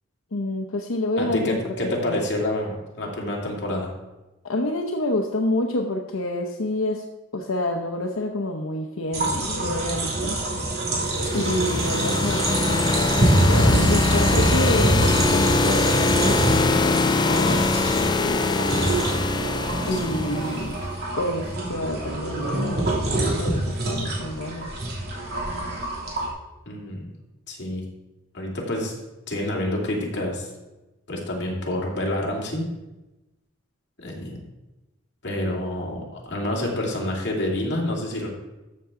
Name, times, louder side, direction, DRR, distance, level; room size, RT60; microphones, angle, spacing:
voice 1, 0.3-2.2 4.4-7.0 7.3-10.4 11.3-18.9 19.8-20.8 21.2-24.7, left 1 dB, 85° left, 2 dB, 0.8 m, -28 dB
voice 2, 1.2-3.9 11.2-11.4 19.9-20.2 26.7-27.0 27.5-27.8 28.3-29.0 29.3-30.5 31.1-32.7 34.0-34.4 35.2-38.3, left 1 dB, 55° left, -2 dB, 2.6 m, -28 dB
sound 1, 9.1-26.3, right 1 dB, 50° right, 2.8 m, -25 dB
sound 2, 10.9-20.7, left 3 dB, 20° left, 0.4 m, -23 dB
13.0 x 6.9 x 3.8 m, 1.0 s
head